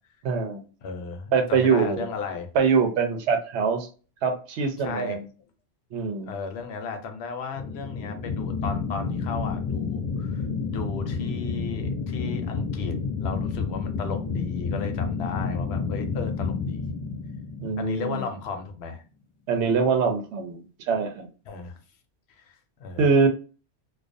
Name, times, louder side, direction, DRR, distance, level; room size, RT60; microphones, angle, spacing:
voice 1, 0.2-0.6 1.3-2.1 2.5-3.9 4.2-5.2 5.9-6.3 17.6-18.2 19.5-21.3 23.0-23.3, right 5 dB, 90° right, 6 dB, 0.9 m, -23 dB
voice 2, 0.8-2.5 4.8-5.2 6.2-16.9 17.8-19.0 21.5-21.8 22.3-23.0, left 5 dB, 75° left, 6 dB, 0.8 m, -35 dB
sound 1, 7.5-18.5, left 5 dB, 45° left, 0.7 m, -30 dB
2.4 x 2.2 x 2.5 m, 0.36 s
omnidirectional pair, 1.1 m